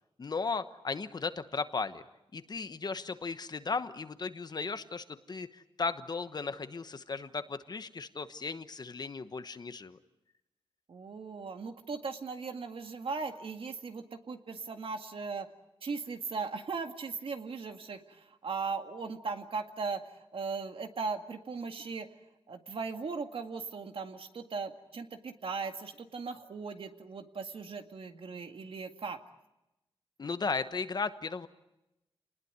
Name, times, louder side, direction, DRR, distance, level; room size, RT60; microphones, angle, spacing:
voice 1, 0.2-2.0 2.3-10.0 30.2-31.5, left 4 dB, 45° left, 11 dB, 1.1 m, -36 dB
voice 2, 10.9-15.5 15.8-22.1 22.5-29.2, right 4 dB, 65° right, 6 dB, 2.0 m, -38 dB
29.0 x 20.0 x 9.6 m, 0.94 s
wide cardioid pair, 160°, 10 cm